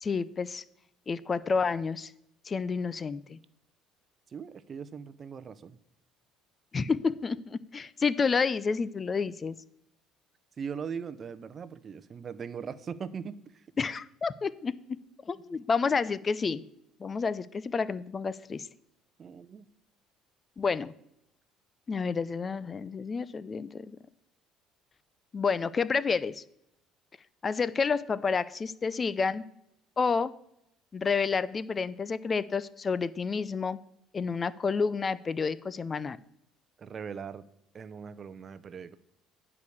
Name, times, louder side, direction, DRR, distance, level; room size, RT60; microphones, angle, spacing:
voice 1, 0.0-0.6 1.1-2.1 2.5-3.4 6.7-9.6 13.8-15.0 15.3-16.6 17.0-18.7 20.6-20.9 21.9-24.0 25.3-26.4 27.4-29.4 30.0-30.3 30.9-33.8 34.1-36.2, left 5 dB, 30° left, 18 dB, 0.4 m, -29 dB
voice 2, 4.3-5.8 10.6-13.6 19.2-19.7 36.8-37.5 37.7-39.0, right 6 dB, 40° right, 14 dB, 0.6 m, -40 dB
10.5 x 4.8 x 7.0 m, 0.78 s
supercardioid pair, 100°, 0 cm